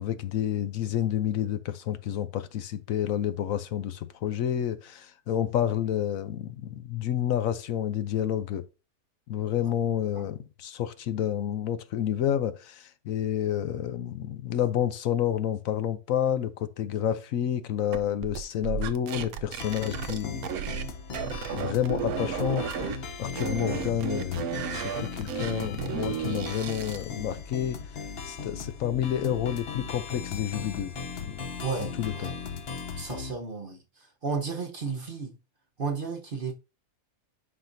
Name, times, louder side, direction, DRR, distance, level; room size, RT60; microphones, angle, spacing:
voice 1, 0.0-8.7 9.3-20.4 21.6-24.5 24.7-27.8 28.2-30.9 31.2-31.4 32.0-32.3, left 10 dB, 70° left, 1.1 m, -29 dB
sound 1, 17.9-20.9 21.1-23.0 23.3-27.0, right 7 dB, 85° right, 1.2 m, -33 dB
sound 2, 19.6-33.3, left 5 dB, 50° left, 1.0 m, -37 dB
voice 2, 31.6-32.3 33.0-35.4 35.8-36.5, right 5 dB, 40° right, 1.0 m, -33 dB
10.0 x 5.8 x 2.6 m
omnidirectional pair, 1.5 m